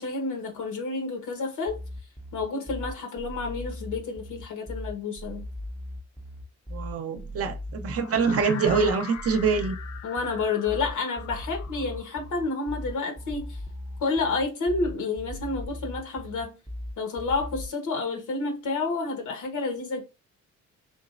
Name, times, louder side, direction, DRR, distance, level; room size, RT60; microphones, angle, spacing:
voice 1, 0.0-1.8 2.3-5.4 10.0-13.6 14.0-16.6 17.0-20.0, left 3 dB, 80° left, 1.3 m, -30 dB
sound 1, 1.7-17.7, left 1 dB, ahead, 0.5 m, -38 dB
voice 2, 6.7-9.8, right 5 dB, 50° right, 0.7 m, -25 dB
sound 2, 7.9-13.9, left 8 dB, 60° left, 0.6 m, -42 dB
3.7 x 3.0 x 2.5 m
cardioid pair, 90°, 30 cm